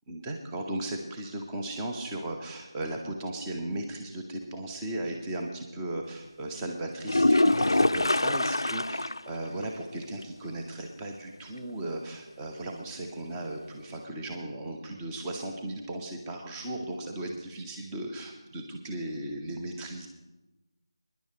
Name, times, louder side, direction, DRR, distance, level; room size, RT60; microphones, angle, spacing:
voice 1, 0.1-20.1, right 1 dB, 10° right, 1 dB, 0.7 m, -36 dB
sound 1, 7.0-9.3 9.6-9.7 10.2-10.3 14.0-14.1, left 2 dB, 70° left, 0.4 m, -24 dB
22.5 x 10.5 x 3.2 m, 1.1 s
figure-of-eight pair, 165°, 3 cm